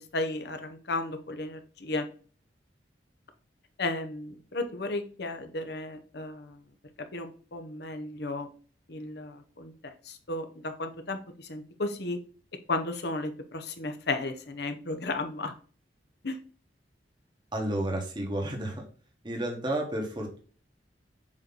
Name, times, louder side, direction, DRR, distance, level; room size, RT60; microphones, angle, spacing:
voice 1, 0.0-2.1 3.8-6.6 7.1-8.5 8.9-12.2 12.7-15.5 16.2-16.4, left 2 dB, 65° left, 7 dB, 0.9 m, -34 dB
voice 2, 17.5-18.8 19.2-20.4, right 1 dB, 25° right, 1 dB, 1.5 m, -31 dB
7.4 x 3.2 x 4.1 m, 0.41 s
head